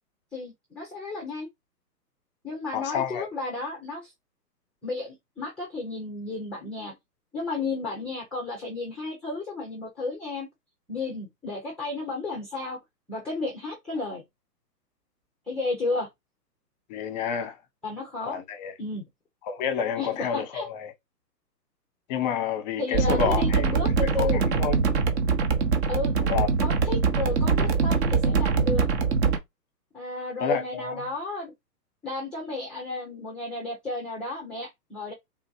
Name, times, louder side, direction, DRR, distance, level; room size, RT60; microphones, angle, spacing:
voice 1, 0.3-1.5 2.4-4.1 4.8-6.9 7.3-10.5 10.9-12.8 13.1-14.2 15.5-16.1 17.8-18.4 18.8-19.0 20.0-20.7 22.8-24.4 25.9-26.1 26.6-28.9 29.9-31.5 32.0-35.1, left 3 dB, ahead, 0.6 m, -32 dB
voice 2, 2.7-3.3 16.9-17.6 18.2-18.7 19.5-20.9 22.1-23.7 24.0-24.8 26.3-26.5 30.4-31.0, left 7 dB, 25° left, 0.9 m, -29 dB
sound 1, 22.9-29.4, right 5 dB, 40° right, 1.1 m, -23 dB
3.7 x 2.5 x 4.4 m
hypercardioid pair, 135°, 49 cm